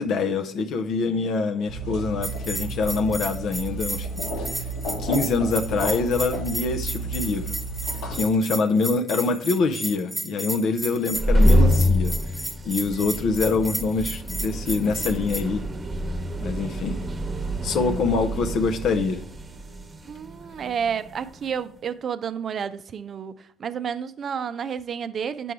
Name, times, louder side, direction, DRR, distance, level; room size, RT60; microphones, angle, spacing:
voice 1, 0.0-4.6 5.0-7.6 8.1-12.3 12.6-15.6 16.4-17.0 17.6-19.2, left 4 dB, 60° left, 0.5 m, -25 dB
sound 1, 1.7-8.2, right 2 dB, 75° left, 1.6 m, -32 dB
Bell, 2.2-15.4, right 1 dB, 5° right, 0.7 m, -33 dB
sound 2, 11.0-21.5, equal, 30° right, 1.0 m, -26 dB
voice 2, 20.1-25.5, right 7 dB, 50° right, 0.4 m, -30 dB
6.9 x 4.7 x 4.5 m
hypercardioid pair, 60°, 0 cm